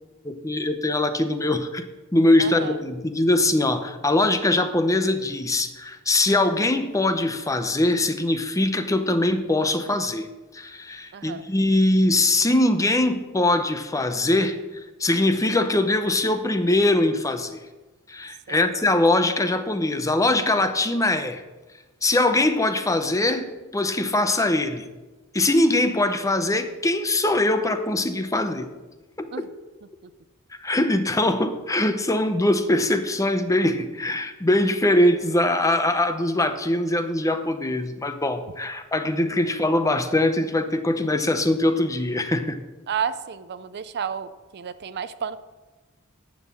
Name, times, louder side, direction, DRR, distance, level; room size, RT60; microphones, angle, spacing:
voice 1, 0.2-1.9 2.1-10.3 10.5-17.6 18.1-21.4 22.0-24.8 25.3-28.7 29.2-29.5 30.6-42.6, left 2 dB, 15° left, 9 dB, 0.7 m, -22 dB
voice 2, 2.4-2.8 11.1-11.4 18.5-18.7 29.3-29.5 42.9-45.4, right 7 dB, 50° right, 14 dB, 0.5 m, -31 dB
10.5 x 6.3 x 7.5 m, 1.2 s
head